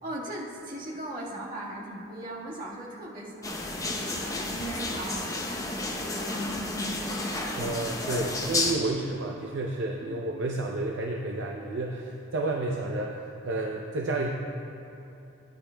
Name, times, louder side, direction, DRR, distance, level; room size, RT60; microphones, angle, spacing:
voice 1, 0.0-7.8 10.0-10.2, right 1 dB, 40° right, -5 dB, 1.6 m, -38 dB
sound 1, 3.4-8.7, left 2 dB, 15° left, 0.7 m, -32 dB
voice 2, 7.6-14.3, right 2 dB, 60° right, 0 dB, 0.6 m, -31 dB
17.0 x 9.1 x 2.2 m, 2.9 s
head